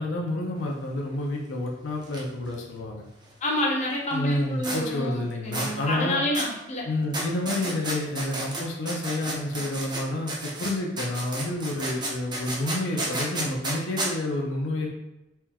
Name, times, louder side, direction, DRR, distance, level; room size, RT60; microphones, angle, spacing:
voice 1, 0.0-3.1 4.1-6.2 6.8-14.9, left 1 dB, 85° left, -1 dB, 0.7 m, -29 dB
sound 1, 2.0-2.2 2.5-2.6 4.6-4.8 5.5-5.7 6.3-6.5 7.1-10.0 10.3-14.1, right 2 dB, 25° right, 0.7 m, -31 dB
voice 2, 3.4-6.9, left 1 dB, 40° left, -3 dB, 0.9 m, -28 dB
4.4 x 3.4 x 2.3 m, 0.93 s
head